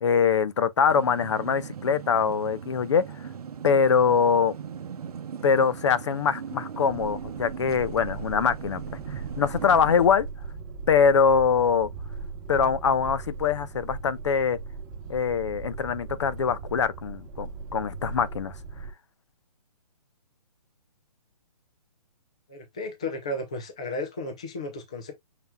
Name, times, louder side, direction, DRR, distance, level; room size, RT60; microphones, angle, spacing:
voice 1, 0.0-3.0 3.6-4.6 5.4-8.8 9.1-10.3 10.9-11.9 12.5-14.6 15.1-18.5, left 6 dB, 50° left, 0.6 m, -23 dB
sound 1, 0.9-10.1, right 7 dB, 70° right, 0.7 m, -39 dB
sound 2, 6.9-18.9, right 4 dB, 20° right, 1.0 m, -39 dB
voice 2, 22.5-25.1, left 2 dB, 10° left, 0.3 m, -34 dB
5.7 x 3.4 x 2.3 m
hypercardioid pair, 170°, 20 cm